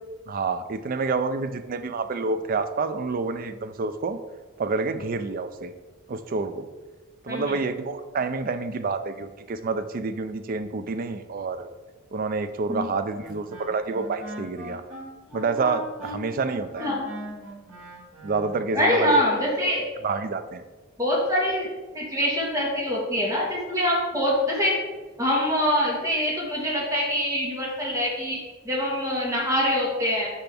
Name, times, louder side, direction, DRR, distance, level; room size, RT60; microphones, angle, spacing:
voice 1, 0.3-4.2 4.6-5.7 6.1-6.7 7.2-11.7 12.1-14.8 15.3-16.9 18.2-19.1 20.0-20.6, right 4 dB, 40° right, 10 dB, 0.4 m, -28 dB
voice 2, 7.3-7.6 12.7-12.9 16.8-17.0 18.7-19.8 21.0-21.7 21.9-24.7 25.2-28.4 28.6-30.3, equal, 15° right, -4 dB, 1.7 m, -24 dB
Wind instrument woodwind instrument, 13.2-18.5, right 1 dB, 85° right, 1.7 m, -39 dB
5.9 x 5.6 x 3.5 m, 1.3 s
head